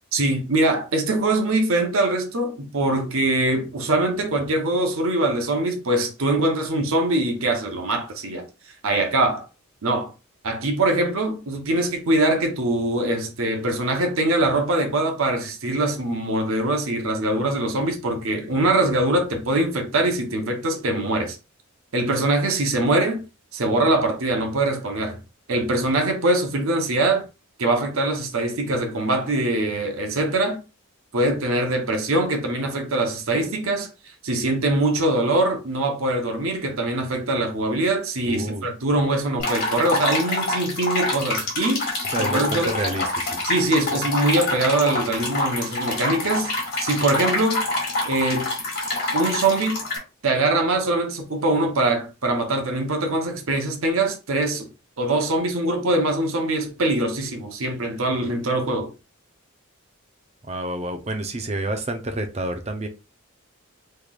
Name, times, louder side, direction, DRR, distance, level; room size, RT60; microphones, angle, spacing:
voice 1, 0.1-8.5 8.8-9.4 9.8-10.1 10.4-21.4 21.9-23.2 23.5-25.2 25.5-27.2 27.6-30.6 31.1-33.9 34.2-41.9 42.2-42.7 43.4-46.5 46.8-47.6 48.0-48.5 49.1-49.8 50.2-54.7 55.0-58.9, right 2 dB, 70° right, 0.9 m, -23 dB
voice 2, 38.2-38.7 42.1-43.4 60.4-62.9, right 1 dB, 30° right, 0.6 m, -29 dB
sound 1, 39.4-50.0, left 2 dB, 45° left, 1.7 m, -26 dB
3.7 x 3.2 x 2.4 m
head